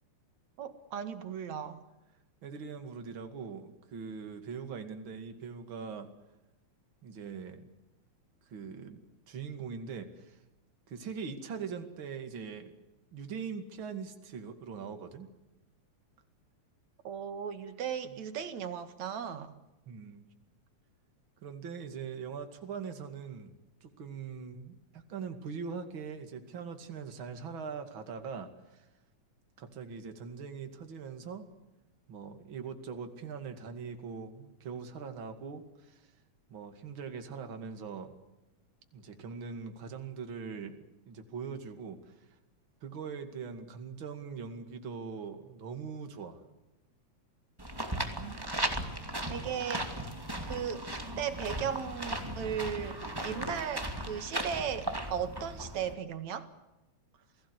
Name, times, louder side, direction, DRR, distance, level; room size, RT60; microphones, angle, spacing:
voice 1, 0.6-1.8 17.0-19.5 48.2-48.4 49.3-49.9 50.5-50.8 51.2-56.5, right 8 dB, 70° right, 10 dB, 3.0 m, -36 dB
voice 2, 2.4-6.1 7.0-7.7 8.5-10.4 10.9-12.7 13.1-15.3 18.0-18.2 19.9-20.3 21.4-23.5 23.8-28.9 29.6-31.5 32.1-36.1 36.5-38.1 38.9-42.2 42.8-46.4, right 6 dB, 45° right, 7 dB, 2.9 m, -42 dB
sound 1, 47.6-55.9, right 1 dB, 10° right, 2.1 m, -37 dB
28.5 x 19.0 x 8.1 m, 1.0 s
omnidirectional pair, 3.4 m